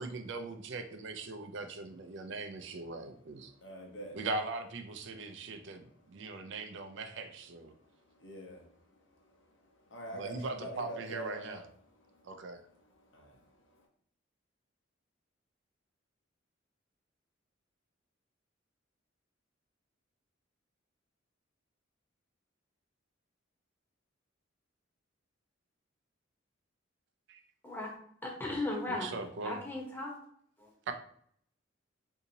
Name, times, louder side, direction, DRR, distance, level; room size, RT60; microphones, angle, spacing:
voice 1, 0.0-3.5 4.1-7.7 10.1-11.7 12.2-12.6 27.3-27.4 28.9-29.6 30.9-31.0, right 3 dB, 65° right, 0.4 m, -40 dB
voice 2, 3.4-4.2 5.3-6.6 7.7-11.7 12.0-13.9, right 1 dB, 70° left, 0.9 m, -48 dB
voice 3, 28.2-29.1 29.4-30.2 30.6-30.7, left 2 dB, 10° left, 0.8 m, -36 dB
3.8 x 2.7 x 2.7 m
head